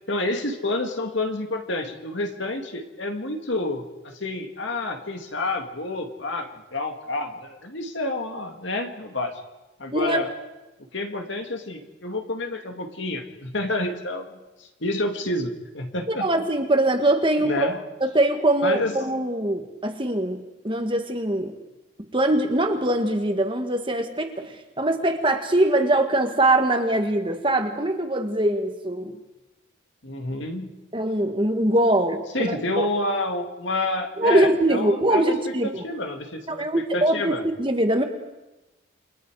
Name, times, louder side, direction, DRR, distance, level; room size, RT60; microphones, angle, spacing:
voice 1, 0.1-9.3 9.8-10.3 10.9-14.4 14.8-16.3 17.4-17.8 18.6-19.0 30.0-30.7 32.3-35.4 35.8-36.7 36.9-37.4, left 2 dB, 65° left, 4 dB, 2.4 m, -29 dB
voice 2, 9.9-10.2 16.1-17.7 18.0-21.5 22.1-29.2 30.9-32.9 34.2-35.8 36.5-38.0, right 1 dB, 25° right, 5 dB, 1.8 m, -22 dB
29.0 x 24.0 x 4.9 m, 1.0 s
head